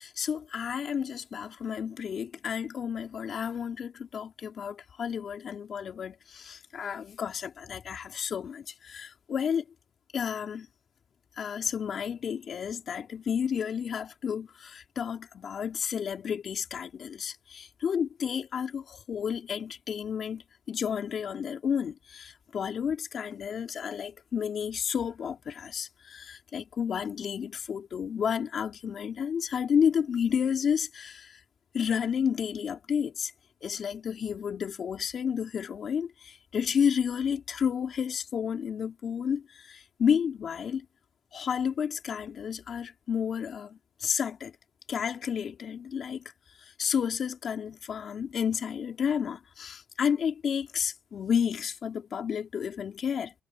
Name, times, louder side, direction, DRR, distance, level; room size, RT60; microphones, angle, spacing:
voice 1, 0.0-9.6 10.1-10.7 11.4-20.4 20.7-31.4 31.7-33.3 33.6-40.8 41.3-44.5 44.9-46.2 46.8-53.3, left 7 dB, 55° left, 3.4 m, -31 dB
cardioid pair, 90°, 0 cm